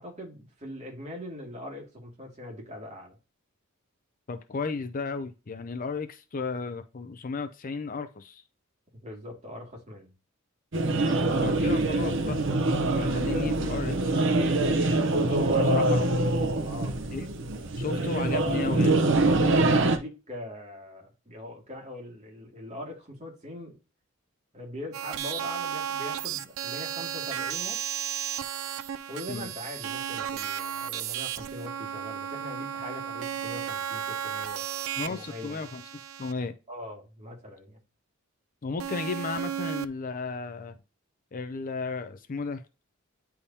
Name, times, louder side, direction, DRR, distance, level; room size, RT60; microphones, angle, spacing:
voice 1, 0.0-3.2 9.0-10.1 15.2-15.7 16.6-17.0 19.2-23.8 24.5-27.8 29.1-34.6 35.1-35.7 36.7-37.8, left 1 dB, 35° right, 2.2 m, -41 dB
voice 2, 4.3-8.4 11.4-12.4 12.9-16.3 17.1-17.3 17.8-19.0 29.3-29.5 35.0-35.8 36.2-36.5 38.6-40.8 41.3-42.6, left 4 dB, 40° left, 0.5 m, -34 dB
sound 1, 10.7-20.0, right 2 dB, 60° right, 0.8 m, -24 dB
sound 2, 24.9-36.3 38.8-39.9, right 9 dB, 90° right, 0.4 m, -34 dB
9.6 x 3.5 x 2.8 m
head